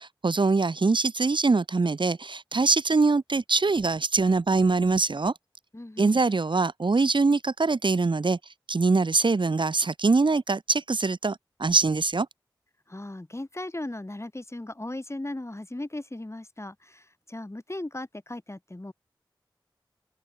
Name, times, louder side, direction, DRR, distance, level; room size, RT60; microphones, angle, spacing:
voice 1, 0.0-5.3 6.0-8.4 8.7-12.3, right 3 dB, 70° right, 0.8 m, -23 dB
voice 2, 5.7-6.2 12.9-18.9, left 1 dB, 35° left, 5.8 m, -37 dB
open air
wide cardioid pair, 60°, 9 cm